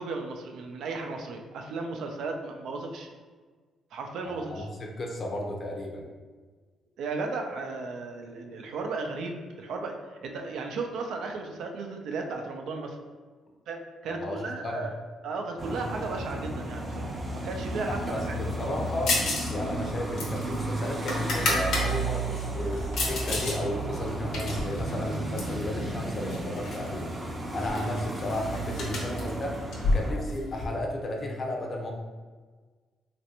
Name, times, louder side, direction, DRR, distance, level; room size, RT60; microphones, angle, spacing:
voice 1, 0.0-3.1 3.9-4.7 7.0-13.0 13.7-15.0 15.2-18.4, right 3 dB, 75° right, 3 dB, 0.4 m, -35 dB
voice 2, 4.2-6.1 14.1-14.8 17.9-19.1 19.5-27.1 27.5-29.6 29.9-31.9, left 1 dB, 45° left, 1 dB, 0.6 m, -34 dB
sound 1, 15.6-30.1, right 2 dB, 20° right, 0.5 m, -33 dB
sound 2, 19.1-19.5 19.8-21.9 22.3-23.6 23.9-25.6 26.3-26.9 27.1-27.2 27.5-30.7, left 2 dB, 75° left, 0.8 m, -30 dB
3.1 x 2.5 x 2.9 m, 1.4 s
cardioid pair, 90°, 0 cm